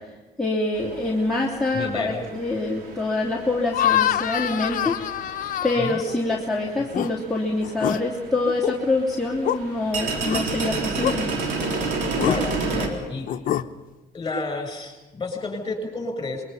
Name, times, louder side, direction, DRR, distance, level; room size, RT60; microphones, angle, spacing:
voice 1, 0.4-4.9 5.6-11.2, left 2 dB, ahead, -6 dB, 3.1 m, -25 dB
sound 1, 0.7-12.9, right 3 dB, 85° right, 3.6 m, -32 dB
voice 2, 1.7-2.2 5.8-6.0 12.2-13.3 14.1-16.4, left 3 dB, 25° left, 4 dB, 7.3 m, -31 dB
sound 2, 3.7-6.4 6.8-7.1 7.6-8.0 8.5-8.8 9.4-9.6 10.3-10.4 11.0-11.2 12.1-12.4 13.3-13.7, left 11 dB, 55° left, 0.9 m, -25 dB
26.0 x 22.5 x 5.7 m, 1.1 s
cardioid pair, 110°, 17 cm